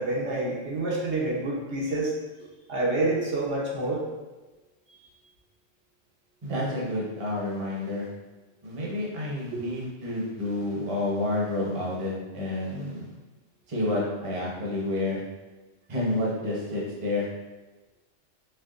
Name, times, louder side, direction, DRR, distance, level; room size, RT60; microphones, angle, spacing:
voice 1, 0.0-2.1 2.7-4.0 4.9-5.0 9.5-9.6, right 2 dB, 65° right, -5 dB, 1.1 m, -28 dB
voice 2, 6.4-8.1 8.6-13.1 13.7-15.2 15.9-17.3, left 1 dB, 30° right, -4 dB, 0.8 m, -29 dB
4.5 x 3.3 x 2.5 m, 1.2 s
omnidirectional pair, 1.3 m